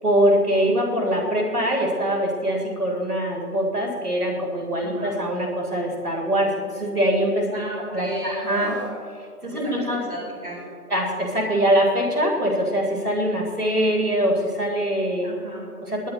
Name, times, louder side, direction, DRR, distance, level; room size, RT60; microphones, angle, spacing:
voice 1, 0.0-7.6 7.9-8.8 9.4-10.0 10.9-15.3 15.8-16.1, equal, 75° right, -1 dB, 3.7 m, -23 dB
voice 2, 4.8-5.1 7.5-8.5 9.5-9.6 10.1-10.6 15.2-15.7, right 1 dB, 25° right, -11 dB, 4.6 m, -34 dB
Screaming, 8.4-9.0 10.4-10.7, equal, 15° left, 2.1 m, -35 dB
19.5 x 12.0 x 4.0 m, 2.2 s
figure-of-eight pair, 160°, 46 cm